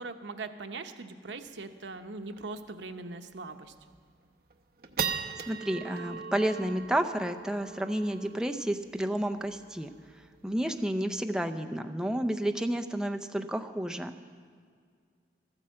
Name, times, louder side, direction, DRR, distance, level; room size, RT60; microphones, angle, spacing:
voice 1, 0.0-3.7, right 3 dB, 90° right, 7 dB, 0.8 m, -41 dB
sound 1, 1.5-1.6 1.8-1.9 2.3-2.6 3.1-3.2 3.7-4.1 4.5-11.1, right 6 dB, 55° right, 0.7 m, -39 dB
voice 2, 5.5-9.9 10.4-14.1, right 1 dB, 5° right, 5 dB, 0.5 m, -31 dB
13.0 x 9.8 x 7.5 m, 2.1 s
head